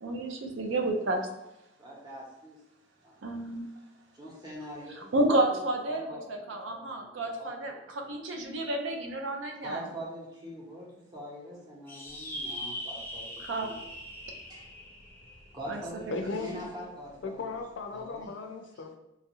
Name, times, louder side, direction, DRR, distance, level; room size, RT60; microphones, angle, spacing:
voice 1, 0.0-1.2 3.2-3.7 5.0-9.8 13.4-13.7 15.7-15.8 16.1-16.2, right 1 dB, 75° right, 3 dB, 0.5 m, -31 dB
voice 2, 1.8-2.6 3.0-3.2 4.1-5.6 5.8-8.1 9.6-10.9 11.1-13.9 14.5-14.7 15.5-17.6 17.9-18.3, right 1 dB, 20° right, -4 dB, 0.8 m, -43 dB
sound 1, 11.9-16.6, left 1 dB, 10° left, 0.5 m, -41 dB
voice 3, 16.1-16.5 17.2-19.0, left 4 dB, 70° left, 5 dB, 0.4 m, -36 dB
3.0 x 2.3 x 2.9 m, 0.92 s
head